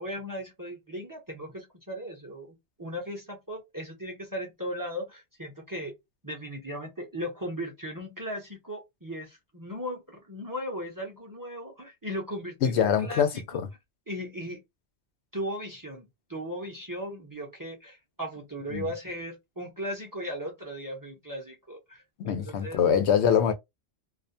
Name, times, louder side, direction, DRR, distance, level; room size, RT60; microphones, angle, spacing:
voice 1, 0.0-5.9 6.2-13.6 14.1-14.6 15.3-22.8, equal, 25° right, 0.6 m, -37 dB
voice 2, 12.6-13.3 18.7-18.9 22.2-23.5, left 8 dB, 85° left, 0.9 m, -23 dB
2.4 x 2.1 x 2.6 m
omnidirectional pair, 1.1 m